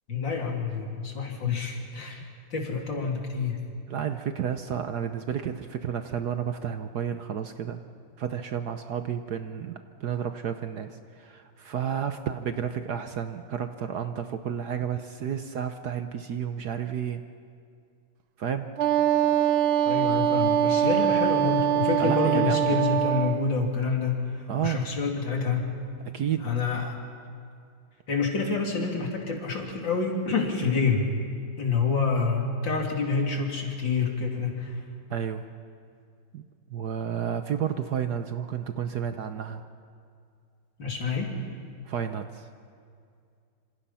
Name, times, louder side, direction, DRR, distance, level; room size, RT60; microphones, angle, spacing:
voice 1, 0.1-2.2 2.5-3.6 19.9-25.7 26.4-27.0 28.1-31.1 31.6-34.8 40.8-41.3, left 4 dB, 65° left, 0 dB, 3.5 m, -27 dB
voice 2, 3.9-7.8 8.2-9.7 10.0-17.2 18.4-18.7 22.0-22.8 24.5-24.9 26.1-26.5 35.1-35.5 36.3-36.4 36.7-39.7 41.9-42.5, right 8 dB, 60° right, 8 dB, 1.2 m, -31 dB
Wind instrument woodwind instrument, 18.8-23.4, right 10 dB, 80° right, 1.7 m, -23 dB
26.5 x 26.5 x 5.7 m, 2.3 s
omnidirectional pair, 2.3 m